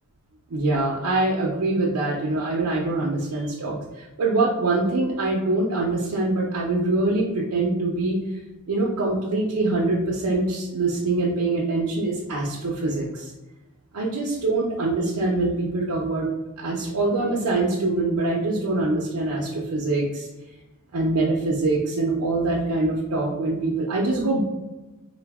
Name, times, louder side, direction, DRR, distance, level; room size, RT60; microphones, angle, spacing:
voice 1, 0.5-8.4 8.7-13.3 13.9-16.3 16.6-20.3 20.9-24.4, right 2 dB, 85° right, -4 dB, 0.5 m, -24 dB
3.8 x 2.0 x 3.4 m, 1.0 s
head